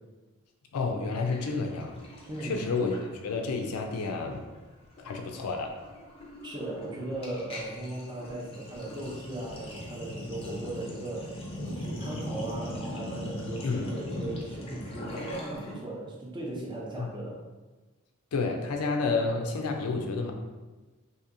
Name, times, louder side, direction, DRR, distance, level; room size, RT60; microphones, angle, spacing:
voice 1, 0.7-2.0 2.4-4.4 5.0-5.8 13.6-13.9 17.0-17.1 18.3-20.3, left 4 dB, 85° left, 3 dB, 0.4 m, -30 dB
Sink (filling or washing), 1.3-3.5 3.8-4.1 4.3-15.7, left 1 dB, 25° left, 0.5 m, -40 dB
voice 2, 2.3-2.6 6.4-17.4, right 1 dB, 20° right, -4 dB, 0.6 m, -37 dB
2.8 x 2.7 x 2.5 m, 1.2 s
head